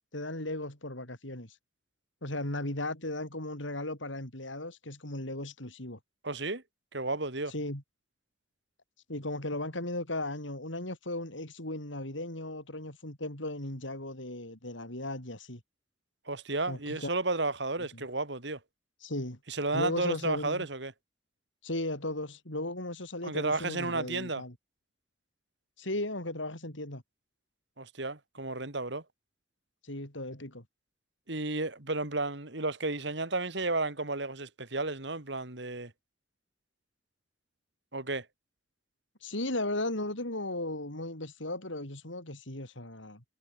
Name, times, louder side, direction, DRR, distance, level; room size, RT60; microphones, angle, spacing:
voice 1, 0.1-1.6 2.2-6.0 7.5-7.8 9.1-15.6 16.7-17.1 17.9-18.0 19.0-19.4 19.7-20.7 21.6-24.5 25.8-27.0 29.8-30.6 39.2-43.2, left 1 dB, 80° left, 6.2 m, -36 dB
voice 2, 6.2-6.6 6.9-7.5 16.3-18.6 19.5-20.9 23.2-24.4 27.8-29.0 31.3-35.9 37.9-38.3, right 2 dB, 65° right, 2.8 m, -32 dB
head